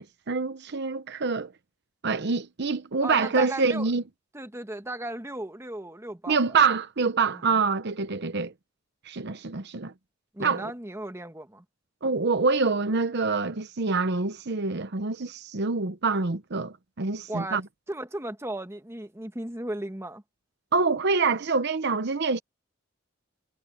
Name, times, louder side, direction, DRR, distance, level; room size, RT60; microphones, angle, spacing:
voice 1, 0.0-1.5 2.0-4.0 6.3-8.5 9.0-9.9 10.4-10.7 12.0-17.6 20.7-22.4, right 4 dB, 60° right, 0.9 m, -26 dB
voice 2, 3.0-3.9 4.3-6.4 7.3-7.6 10.3-11.6 17.3-17.6 17.9-20.2, right 1 dB, 15° right, 1.5 m, -36 dB
head